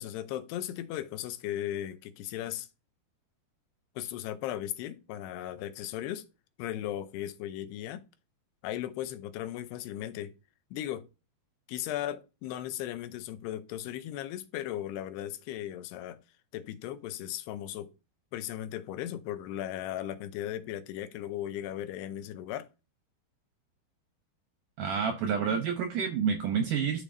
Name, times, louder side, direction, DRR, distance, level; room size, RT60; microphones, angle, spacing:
voice 1, 0.0-2.7 4.0-6.3 6.6-8.0 8.6-10.3 10.7-11.1 11.7-16.2 16.5-17.9 18.3-22.7, left 12 dB, 85° left, 2.7 m, -37 dB
voice 2, 24.8-27.0, right 6 dB, 75° right, 1.9 m, -29 dB
12.5 x 4.9 x 2.6 m
omnidirectional pair, 4.7 m